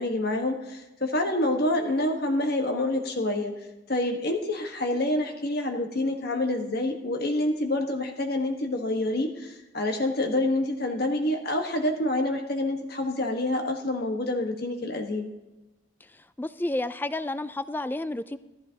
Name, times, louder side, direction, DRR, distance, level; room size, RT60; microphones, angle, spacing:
voice 1, 0.0-3.5 3.9-15.3, left 1 dB, 50° left, 3 dB, 1.3 m, -27 dB
voice 2, 16.0-18.4, left 2 dB, 10° left, 14 dB, 0.3 m, -31 dB
15.0 x 13.5 x 2.9 m, 1.0 s
head